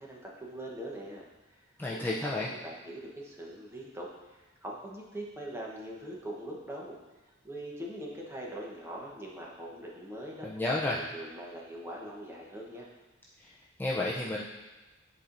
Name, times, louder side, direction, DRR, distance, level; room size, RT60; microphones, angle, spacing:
voice 1, 0.0-1.7 1.9-7.0 7.4-10.5 10.9-12.9, right 1 dB, 15° right, -3 dB, 0.9 m, -42 dB
voice 2, 1.8-2.5 10.4-11.0 13.4-14.4, left 2 dB, 10° left, -5 dB, 0.4 m, -32 dB
9.8 x 4.2 x 2.6 m, 1.2 s
head